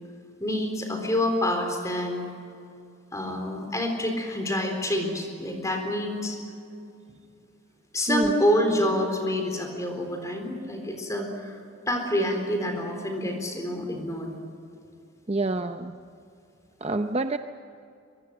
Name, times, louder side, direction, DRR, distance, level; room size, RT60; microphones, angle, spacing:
voice 1, 0.4-2.2 3.1-6.4 7.9-11.6 11.9-14.3, left 1 dB, 15° left, 4 dB, 4.1 m, -27 dB
voice 2, 15.3-16.0 16.8-17.4, right 2 dB, 30° right, 8 dB, 0.6 m, -27 dB
23.5 x 22.5 x 7.9 m, 2.5 s
head